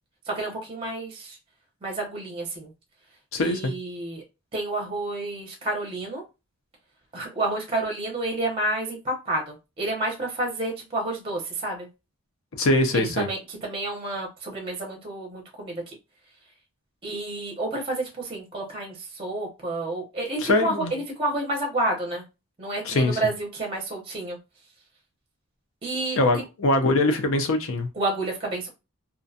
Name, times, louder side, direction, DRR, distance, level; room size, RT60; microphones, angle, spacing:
voice 1, 0.3-1.4 1.8-2.7 3.4-4.2 4.5-6.2 7.1-11.9 12.9-16.0 17.0-22.2 22.6-24.4 25.8-26.4 28.0-28.7, right 2 dB, 25° right, 0.6 m, -30 dB
voice 2, 3.3-3.7 12.5-13.3 20.4-20.9 22.8-23.2 26.2-27.9, left 2 dB, 65° left, 0.5 m, -22 dB
2.5 x 2.1 x 2.6 m
head